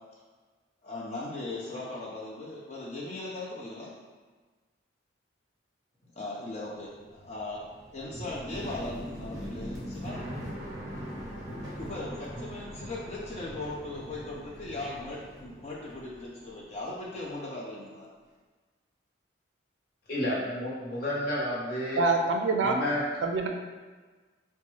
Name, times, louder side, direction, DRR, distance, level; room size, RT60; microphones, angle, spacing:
voice 1, 0.8-3.9 6.2-7.6 7.9-10.3 11.0-11.1 11.5-18.1, left 2 dB, 35° left, -4 dB, 0.4 m, -38 dB
sound 1, 6.7-16.8 17.0-17.9, equal, 15° right, 0.5 m, -41 dB
voice 2, 20.1-22.0 22.6-23.1, left 1 dB, 50° left, -6 dB, 0.9 m, -30 dB
voice 3, 22.0-22.8 23.2-23.5, right 3 dB, 70° right, 3 dB, 0.4 m, -25 dB
4.0 x 2.2 x 3.1 m, 1.4 s
head